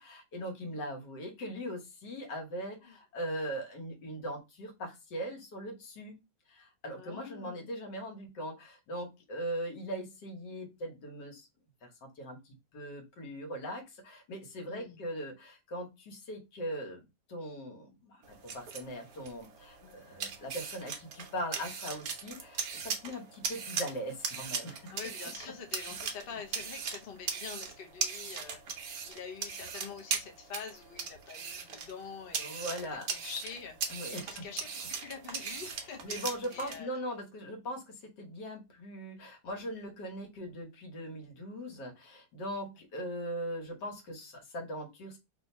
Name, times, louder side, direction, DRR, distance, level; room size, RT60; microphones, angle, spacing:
voice 1, 0.0-6.2 6.5-11.5 11.8-17.0 17.3-25.0 32.4-33.1 33.9-34.4 36.0-45.2, equal, 70° left, 3 dB, 1.7 m, -40 dB
voice 2, 6.9-7.7 14.7-15.0 19.8-19.9 24.9-37.0 40.5-40.6, left 6 dB, 45° left, 4 dB, 0.8 m, -46 dB
sound 1, 18.2-36.8, right 6 dB, 60° right, 1.2 m, -39 dB
3.4 x 2.8 x 4.1 m, 0.23 s
omnidirectional pair, 1.9 m